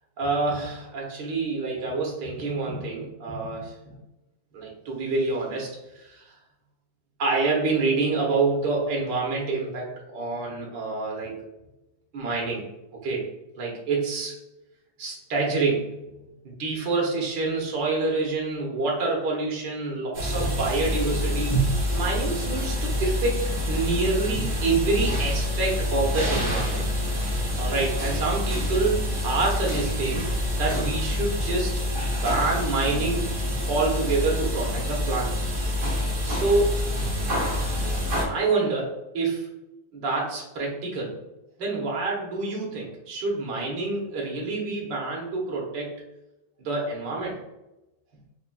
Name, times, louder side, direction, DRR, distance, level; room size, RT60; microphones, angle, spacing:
voice 1, 0.2-3.9 4.5-6.2 7.2-11.3 12.1-12.6 13.0-13.2 13.6-14.4 15.0-15.9 16.4-21.6 21.9-26.8 27.6-33.2 33.7-35.3 36.2-36.9 38.2-39.5 39.9-41.2 41.6-45.9 46.6-47.3, right 3 dB, 85° right, -2 dB, 1.7 m, -27 dB
sound 1, 20.1-38.2, left 1 dB, 45° right, 1.6 m, -27 dB
5.5 x 2.6 x 2.2 m, 0.95 s
omnidirectional pair, 1.9 m